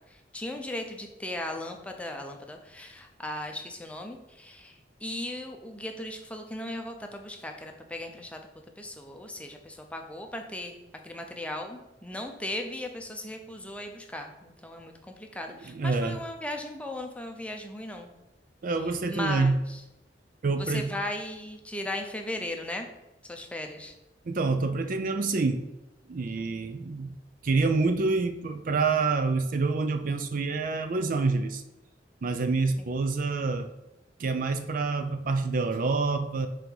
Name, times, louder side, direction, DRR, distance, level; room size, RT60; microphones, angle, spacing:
voice 1, 0.1-8.4 8.8-10.8 11.0-18.1 18.8-19.8 20.6-22.9 23.2-23.9 32.8-32.9, left 1 dB, 5° left, 3 dB, 0.6 m, -37 dB
voice 2, 15.7-16.2 18.6-19.6 20.4-20.9 24.3-25.6 26.1-27.2 27.4-31.6 32.2-33.7 34.2-36.5, right 3 dB, 50° right, 7 dB, 0.4 m, -27 dB
5.4 x 3.9 x 4.6 m, 0.96 s
head